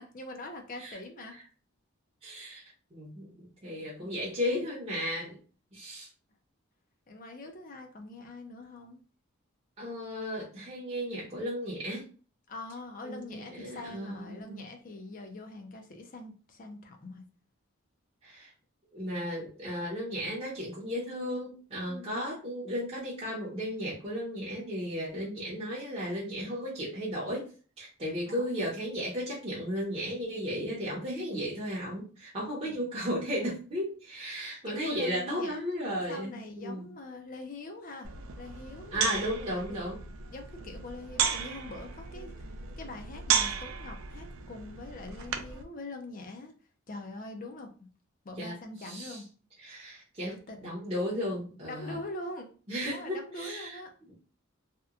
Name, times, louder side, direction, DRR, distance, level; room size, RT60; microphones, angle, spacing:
voice 1, 0.0-1.4 3.6-4.1 7.1-9.0 12.5-17.2 21.8-22.2 28.3-28.5 32.4-33.0 34.6-35.6 35.9-38.1 38.4-39.1 39.4-39.7 40.1-42.5 42.8-46.5 46.9-47.7 48.2-49.3 50.3-50.8 51.7-52.5 52.8-53.9, left 2 dB, 40° left, 4 dB, 0.4 m, -43 dB
voice 2, 2.2-2.6 2.9-5.4 5.7-6.1 9.8-12.0 13.0-14.6 18.2-18.5 18.9-27.5 27.8-36.9 38.9-40.0 48.4-48.6 48.8-49.2 49.6-50.3 50.6-52.0 52.7-53.8, equal, 30° right, -6 dB, 0.6 m, -35 dB
sound 1, 38.0-45.6, right 7 dB, 65° right, 0.3 m, -34 dB
2.8 x 2.2 x 2.3 m, 0.38 s
head